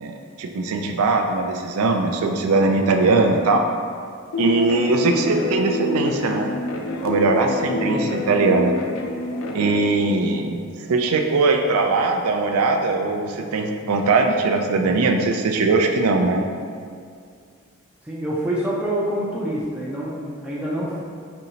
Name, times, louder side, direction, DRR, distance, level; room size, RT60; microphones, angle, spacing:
voice 1, 0.0-3.7 4.4-6.5 7.0-8.8 9.5-16.4, right 3 dB, 80° right, 4 dB, 0.4 m, -20 dB
sound 1, 4.3-9.8, left 2 dB, 65° left, 0.4 m, -27 dB
voice 2, 5.0-5.4 7.8-8.2 18.0-21.0, right 1 dB, 5° right, -7 dB, 0.4 m, -27 dB
5.3 x 2.8 x 2.7 m, 2.2 s
head